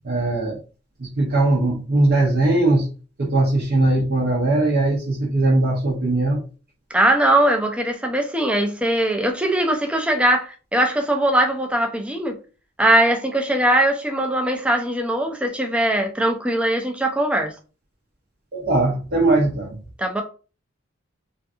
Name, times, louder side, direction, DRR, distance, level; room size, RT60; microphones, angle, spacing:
voice 1, 0.0-0.6 1.0-2.9 3.2-6.4 18.5-19.8, right 2 dB, 50° right, 0.6 m, -20 dB
voice 2, 6.9-12.4 12.8-17.5 20.0-20.2, right 1 dB, 5° right, 0.4 m, -20 dB
2.6 x 2.5 x 2.3 m
head